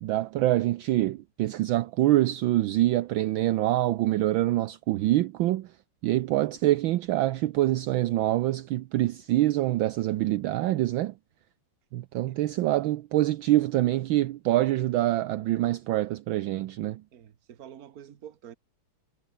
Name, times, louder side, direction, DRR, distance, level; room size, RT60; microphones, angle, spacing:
voice 1, 0.0-5.7 6.0-11.1 11.9-17.0, right 15 dB, 70° right, 1.4 m, -25 dB
voice 2, 12.3-12.8 17.1-18.5, right 10 dB, 50° right, 1.5 m, -48 dB
omnidirectional pair, 2.4 m